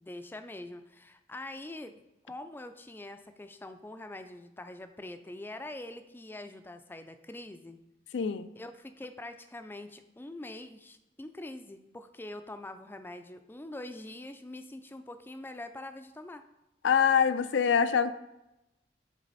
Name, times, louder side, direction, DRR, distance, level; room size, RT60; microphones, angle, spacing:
voice 1, 0.0-7.8 8.6-16.4, left 1 dB, 10° left, 9 dB, 0.4 m, -44 dB
voice 2, 8.1-8.5 16.8-18.1, left 7 dB, 85° left, 12 dB, 0.4 m, -24 dB
10.5 x 4.1 x 4.0 m, 0.93 s
head